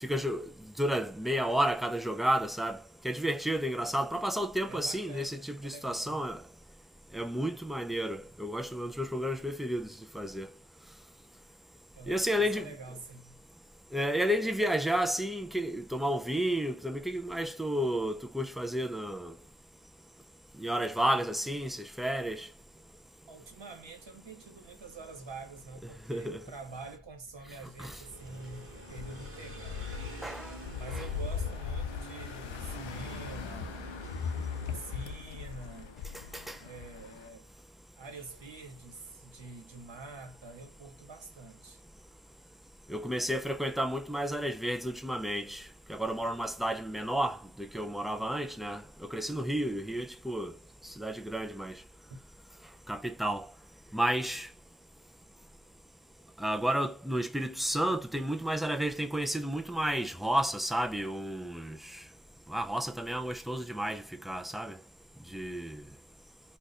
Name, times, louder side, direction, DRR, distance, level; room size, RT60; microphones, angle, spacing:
voice 1, 0.0-0.5 0.8-6.4 7.1-10.5 12.1-12.8 13.9-19.3 20.6-22.5 26.1-26.4 27.8-28.0 30.2-30.5 30.9-31.0 36.3-36.6 42.9-45.6 45.9-50.5 51.0-51.8 52.9-53.5 53.9-54.5 56.4-62.0 62.5-64.8 65.3-65.8, equal, ahead, 0.4 m, -32 dB
voice 2, 4.7-6.3 12.0-13.4 23.3-29.9 30.8-34.0 34.7-36.1 36.6-37.5 38.0-41.8 52.1-52.2, right 3 dB, 60° right, 1.2 m, -46 dB
sound 1, 27.8-35.2, right 1 dB, 25° right, 1.1 m, -46 dB
sound 2, 28.9-37.3, left 7 dB, 65° left, 0.6 m, -39 dB
2.5 x 2.5 x 4.0 m
cardioid pair, 40°, 50 cm